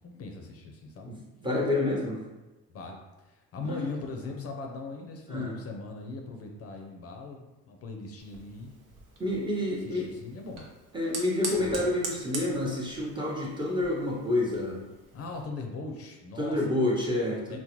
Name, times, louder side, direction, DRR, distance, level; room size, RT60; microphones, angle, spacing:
voice 1, 0.0-1.1 2.7-8.7 9.8-10.7 11.6-11.7 15.1-16.6 17.5-17.6, left 3 dB, 50° left, 2 dB, 0.5 m, -40 dB
voice 2, 1.1-2.2 3.6-3.9 4.3-4.4 5.3-5.5 9.2-10.1 10.9-14.8 16.4-17.6, left 1 dB, 15° right, -3 dB, 0.8 m, -29 dB
Fire, 8.2-15.4, right 3 dB, 75° right, 0.8 m, -42 dB
3.7 x 2.1 x 2.9 m, 1.1 s
cardioid pair, 100°, 31 cm